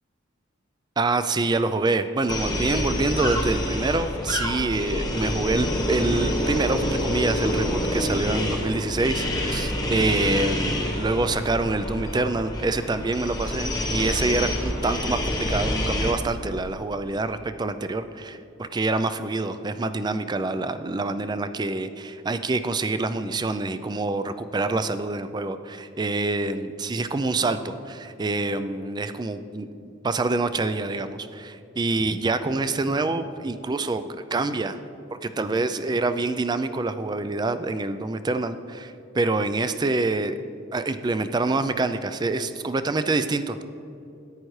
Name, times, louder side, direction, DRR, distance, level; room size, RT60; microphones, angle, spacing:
voice 1, 1.0-34.8 35.1-40.4 40.7-43.6, right 3 dB, 20° right, 11 dB, 0.4 m, -26 dB
sound 1, 2.3-16.1, left 1 dB, 20° left, 1.1 m, -27 dB
14.0 x 10.0 x 3.2 m, 2.7 s
head